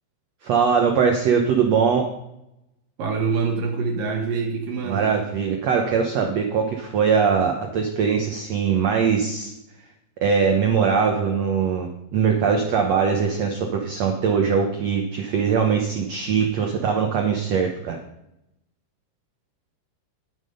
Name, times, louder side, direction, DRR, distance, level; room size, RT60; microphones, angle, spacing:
voice 1, 0.4-2.1 4.8-9.5 10.2-18.0, right 6 dB, 90° right, 2 dB, 1.4 m, -21 dB
voice 2, 3.0-5.2, right 4 dB, 65° right, 2 dB, 2.6 m, -25 dB
10.5 x 10.0 x 5.4 m, 0.85 s
omnidirectional pair, 4.7 m